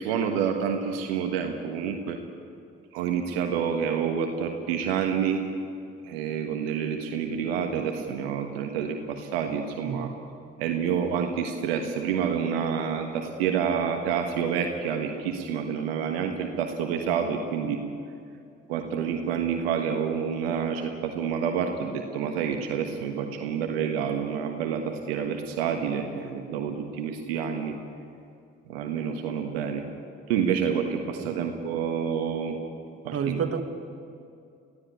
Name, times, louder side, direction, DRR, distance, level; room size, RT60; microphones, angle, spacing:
voice 1, 0.0-2.2 2.9-5.5 6.1-10.1 10.6-17.8 18.7-27.7 28.7-29.8 30.3-32.6 33.0-33.4, right 7 dB, 85° right, 4 dB, 1.4 m, -28 dB
voice 2, 33.1-33.6, right 6 dB, 50° right, 6 dB, 2.1 m, -29 dB
22.5 x 15.5 x 9.8 m, 2.4 s
hypercardioid pair, 50°, 30 cm